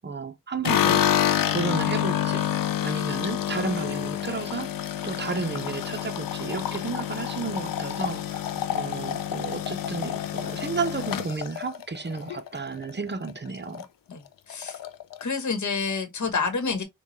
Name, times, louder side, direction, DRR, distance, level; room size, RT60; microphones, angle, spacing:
voice 1, 0.0-1.1 1.5-2.5 2.8-4.8 5.0-13.8, right 4 dB, 35° right, 0.7 m, -32 dB
sound 1, 0.6-12.9 13.2-13.9 14.1-14.2 14.5-15.2, left 10 dB, 90° left, 0.5 m, -28 dB
voice 2, 14.1-14.8 15.2-16.8, left 4 dB, 60° left, 1.1 m, -29 dB
4.0 x 2.3 x 3.0 m
cardioid pair, 50°, 33 cm